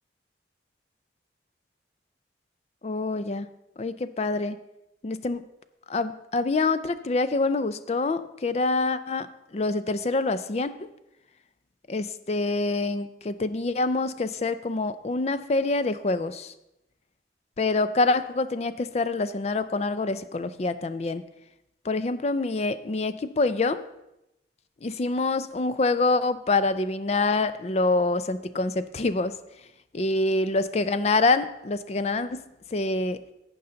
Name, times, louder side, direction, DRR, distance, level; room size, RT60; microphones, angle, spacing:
voice 1, 2.8-3.5 3.8-4.6 5.0-5.5 5.9-10.9 11.9-16.5 17.6-21.2 21.8-23.8 24.8-29.3 29.9-32.4 32.7-33.2, left 3 dB, 35° left, 13 dB, 0.4 m, -26 dB
15.0 x 5.5 x 3.9 m, 0.90 s
head